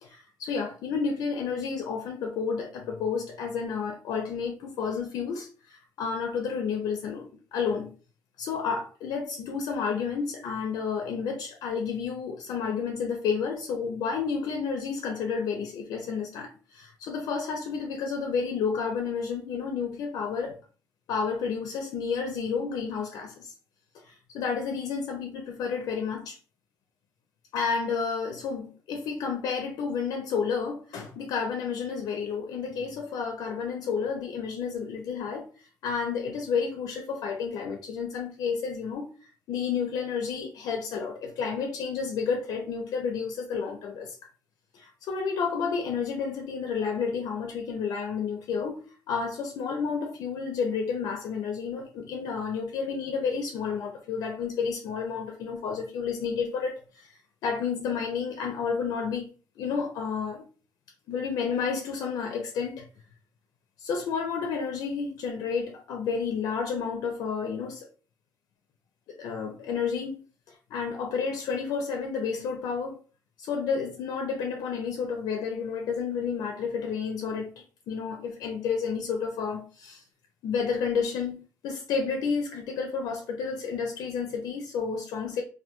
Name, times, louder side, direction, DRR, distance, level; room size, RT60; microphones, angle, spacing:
voice 1, 0.0-7.9 8.4-20.6 21.1-23.5 24.0-26.4 27.5-44.1 44.7-57.1 57.4-59.2 59.6-60.4 61.1-62.9 63.8-67.9 69.2-70.2 70.7-73.0 73.4-80.0 80.4-85.4, left 5 dB, 75° left, 0.4 m, -31 dB
2.2 x 2.2 x 2.8 m
cardioid pair, 175°, 7 cm